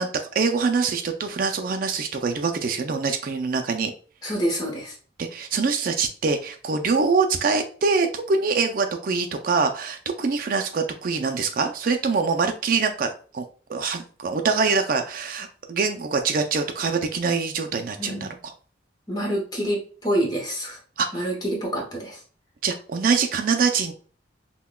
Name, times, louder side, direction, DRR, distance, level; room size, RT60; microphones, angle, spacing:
voice 1, 0.0-3.9 5.2-13.4 13.7-18.3 21.0-21.3 22.6-23.9, right 4 dB, 50° right, 5 dB, 0.4 m, -24 dB
voice 2, 4.2-5.0 18.0-18.4 19.1-20.8 21.1-22.2, right 1 dB, 20° left, -1 dB, 1.0 m, -27 dB
5.6 x 2.2 x 2.2 m, 0.41 s
head